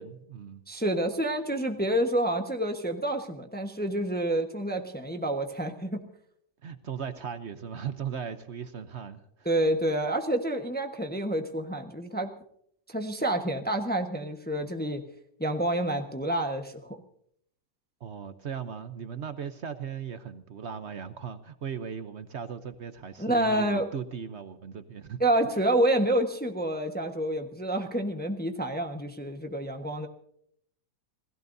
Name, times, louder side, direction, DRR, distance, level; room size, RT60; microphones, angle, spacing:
voice 1, 0.0-0.6 6.6-9.5 18.0-25.6, right 7 dB, 50° right, 10 dB, 0.9 m, -38 dB
voice 2, 0.7-6.1 9.4-12.3 12.9-15.0 15.4-17.0 23.2-23.9 25.2-30.1, right 1 dB, 5° left, 4 dB, 1.0 m, -28 dB
28.5 x 17.0 x 2.7 m, 0.68 s
omnidirectional pair, 1.8 m